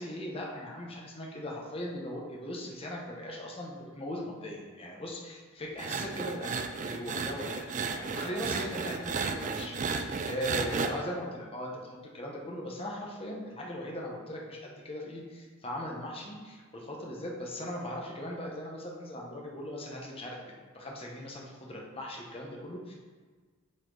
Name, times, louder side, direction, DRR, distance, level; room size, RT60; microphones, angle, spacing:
voice 1, 0.0-7.6 7.9-20.4 20.7-22.9, equal, 25° left, -1 dB, 1.0 m, -39 dB
sound 1, 5.8-10.9, right 4 dB, 35° right, 0.4 m, -33 dB
7.5 x 4.3 x 3.9 m, 1.4 s
head